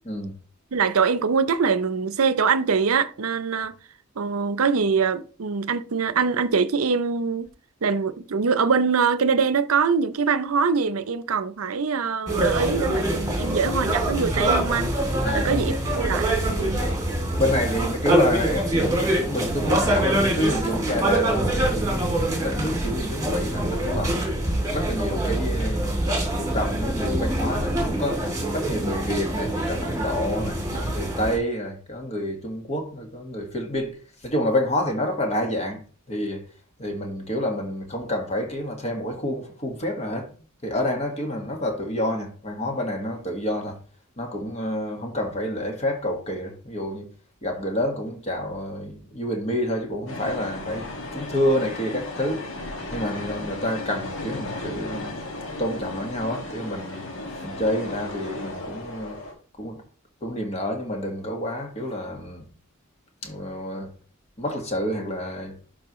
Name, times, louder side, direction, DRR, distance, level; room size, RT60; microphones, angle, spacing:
voice 1, 0.7-3.7 4.2-7.5 7.8-14.9 15.3-16.9, right 5 dB, 80° right, 0.6 m, -23 dB
sound 1, 12.3-31.4, right 1 dB, 15° right, 2.6 m, -24 dB
voice 2, 15.2-15.5 16.8-17.0 17.4-25.9 26.4-36.4 36.8-40.3 40.6-43.8 44.2-47.1 47.4-52.5 52.9-55.2 55.6-57.0 57.4-59.2 59.6-59.8 60.2-62.5 63.2-63.9 64.4-65.6, left 1 dB, 30° left, 1.7 m, -28 dB
sound 2, 50.1-59.3, left 2 dB, 65° left, 2.0 m, -35 dB
11.5 x 4.5 x 3.1 m
head